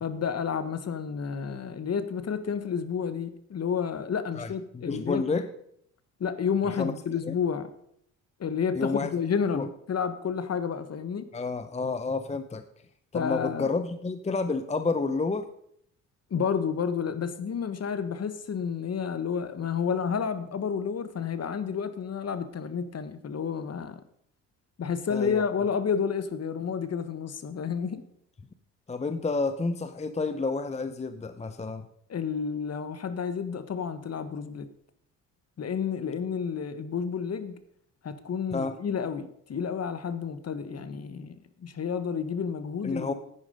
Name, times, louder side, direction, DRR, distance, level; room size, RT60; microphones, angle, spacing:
voice 1, 0.0-5.4 6.2-7.7 8.4-11.3 13.1-13.8 16.3-24.0 24.8-28.0 32.1-34.7 35.6-37.6 38.0-43.1, left 6 dB, 45° left, 1.3 m, -30 dB
voice 2, 4.4-5.5 6.8-6.9 7.2-7.3 8.8-9.1 9.5-9.7 11.3-12.6 13.1-15.5 25.1-25.4 28.9-31.9 38.5-38.8 42.8-43.1, left 3 dB, 20° left, 0.7 m, -30 dB
9.9 x 9.6 x 5.3 m
supercardioid pair, 65°, 36 cm